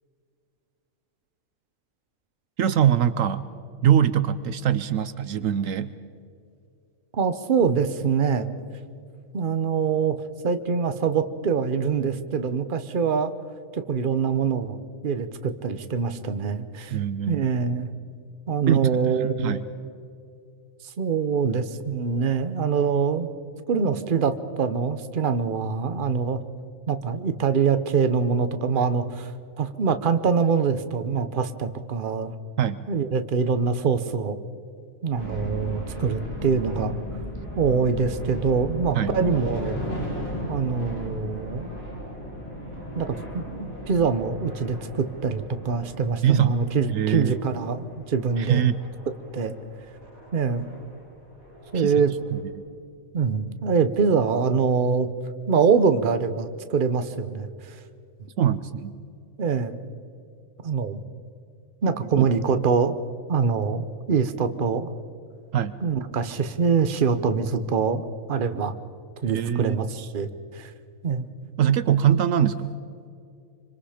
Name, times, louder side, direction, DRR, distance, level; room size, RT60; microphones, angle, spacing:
voice 1, 2.6-3.4 3.8-5.9 16.9-17.5 18.7-19.6 32.6-32.9 38.9-39.1 46.2-46.6 46.9-47.4 48.4-48.8 51.7-51.9 52.3-52.5 58.4-59.0 61.9-62.3 65.5-65.7 69.3-69.8 71.6-72.7, right 9 dB, 75° right, 13 dB, 1.1 m, -23 dB
voice 2, 7.1-8.5 9.3-10.2 10.4-13.3 13.7-14.8 15.0-17.0 17.3-17.9 18.5-19.6 21.0-23.3 23.7-26.4 26.9-29.3 29.6-32.3 32.9-34.4 35.0-37.0 37.6-39.8 40.5-41.7 43.0-48.6 49.3-49.5 50.3-50.6 51.7-52.1 53.1-55.1 55.5-57.8 59.4-59.8 60.6-61.0 61.8-63.0 63.3-64.9 65.8-68.7 69.2-70.7 71.0-71.3, right 5 dB, 40° right, 10 dB, 1.1 m, -24 dB
sound 1, 35.2-52.4, equal, 90° left, 5.4 m, -37 dB
26.0 x 26.0 x 5.1 m, 2.4 s
omnidirectional pair, 1.4 m